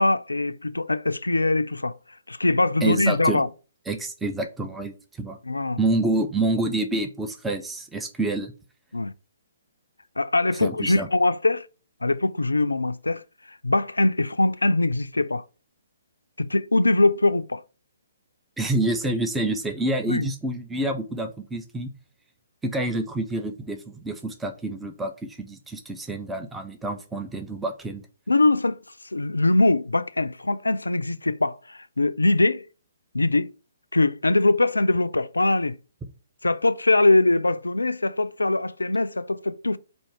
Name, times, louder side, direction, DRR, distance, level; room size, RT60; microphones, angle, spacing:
voice 1, 0.0-2.0 2.3-3.5 5.4-5.8 8.9-9.1 10.2-11.7 12.0-13.2 13.5-15.4 16.4-17.6 20.1-20.3 28.3-28.8 29.1-32.7 33.1-33.5 33.9-35.8 36.4-39.8, left 2 dB, 80° left, 0.3 m, -22 dB
voice 2, 2.8-3.4 3.9-5.4 5.8-8.5 10.5-11.1 18.6-21.9 22.6-28.0, right 2 dB, 5° right, 0.5 m, -27 dB
4.4 x 2.7 x 4.4 m
figure-of-eight pair, 130°, 0 cm